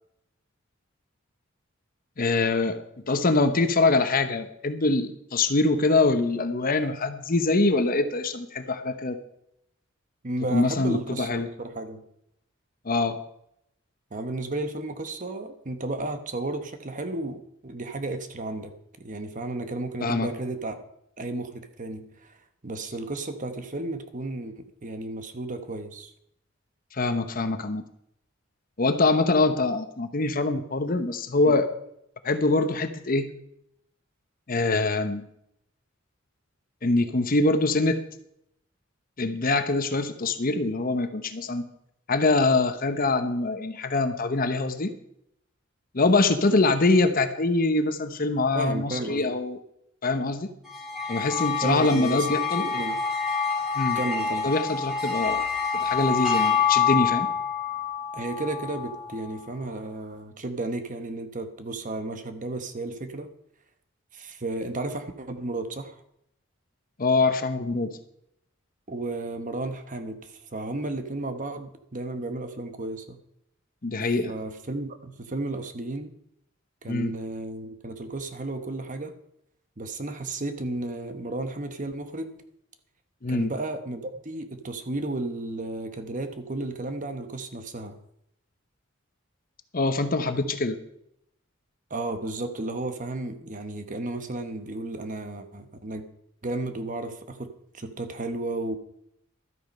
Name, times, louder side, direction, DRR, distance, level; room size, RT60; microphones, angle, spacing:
voice 1, 2.2-2.8 3.1-9.2 10.5-11.5 12.8-13.2 20.0-20.3 26.9-27.8 28.8-31.7 32.2-33.3 34.5-35.3 36.8-38.0 39.2-41.7 42.1-44.9 45.9-49.6 50.0-50.5 51.1-52.6 53.8-54.0 54.4-55.4 55.8-57.3 67.0-68.0 73.8-74.3 76.9-77.1 83.2-83.5 89.7-90.8, left 3 dB, 45° left, 9 dB, 0.9 m, -24 dB
voice 2, 10.2-12.0 14.1-18.7 19.0-20.8 21.2-22.4 22.6-26.1 31.4-31.6 48.5-49.4 51.6-53.0 53.9-54.4 58.1-63.3 64.1-66.0 68.9-73.2 74.3-76.1 76.8-79.1 79.8-82.4 83.3-88.0 91.9-96.1 96.4-98.8, right 2 dB, 40° right, 8 dB, 1.1 m, -33 dB
sound 1, 50.7-59.3, left 6 dB, 5° right, 4.7 m, -27 dB
12.5 x 8.6 x 5.3 m, 0.75 s
head